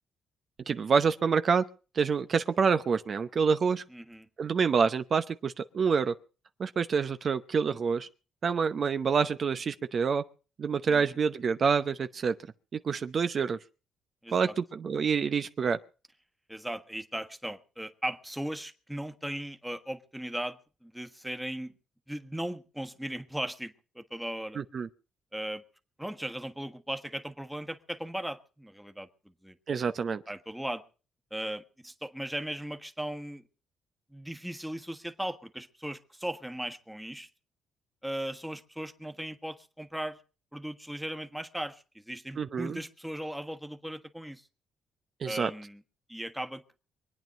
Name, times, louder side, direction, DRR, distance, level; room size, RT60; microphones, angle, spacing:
voice 1, 0.7-1.6 1.9-3.8 4.4-6.1 6.6-8.1 8.4-10.2 10.6-12.3 12.8-13.6 14.3-15.8 24.6-24.9 29.7-30.2 42.4-42.8 45.2-45.5, right 6 dB, 50° right, 0.8 m, -27 dB
voice 2, 3.9-4.3 14.2-14.5 16.5-21.7 22.1-24.6 25.3-25.6 26.0-29.1 29.4-29.5 30.3-30.8 31.3-33.4 34.1-37.3 38.0-40.2 40.5-44.5 45.2-45.8 46.1-46.6, right 1 dB, 5° right, 1.5 m, -37 dB
24.5 x 9.3 x 5.2 m
cardioid pair, 90°, 0 cm